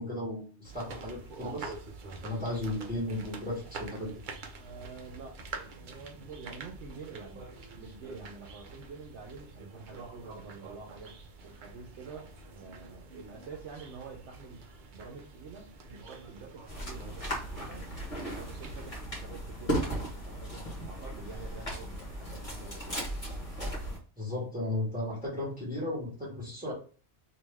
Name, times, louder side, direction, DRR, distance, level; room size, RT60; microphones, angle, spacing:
voice 1, 0.0-1.7 2.2-4.1 24.2-26.7, left 1 dB, 10° right, -6 dB, 1.7 m, -35 dB
sound 1, 0.6-19.0, right 3 dB, 55° right, 0.7 m, -47 dB
voice 2, 4.5-7.5 7.8-11.1 11.4-12.3 12.5-14.6 14.9-17.9 18.2-23.1, right 4 dB, 75° right, 0 dB, 1.0 m, -47 dB
sound 2, 16.7-24.0, right 1 dB, 30° left, 1.4 m, -36 dB
3.1 x 2.8 x 3.4 m, 0.39 s
omnidirectional pair, 1.2 m